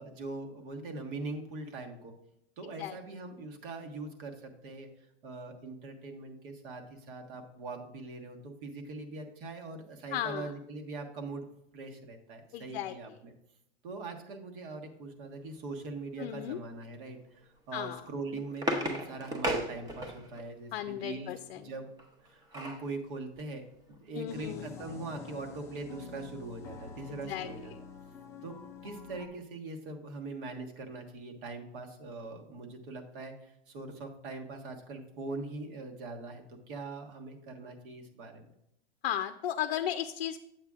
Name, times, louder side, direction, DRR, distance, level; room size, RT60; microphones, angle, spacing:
voice 1, 0.0-2.1 2.6-4.9 5.2-11.5 11.7-13.3 13.8-21.9 22.2-27.7 28.4-28.6 28.8-38.5, right 3 dB, 60° right, 3 dB, 1.5 m, -42 dB
voice 2, 10.1-10.5 12.5-12.9 16.2-16.6 17.7-18.0 20.7-21.6 24.2-24.7 27.2-27.5 39.0-40.4, left 11 dB, 65° left, 9 dB, 0.5 m, -35 dB
sound 1, 18.0-20.4 22.0-22.9 23.4-23.5 23.7-24.0, equal, 10° right, 0.8 m, -35 dB
sound 2, 24.3-29.3, left 5 dB, 10° left, 0.3 m, -47 dB
8.1 x 7.9 x 2.4 m, 0.79 s
hypercardioid pair, 140°, 30 cm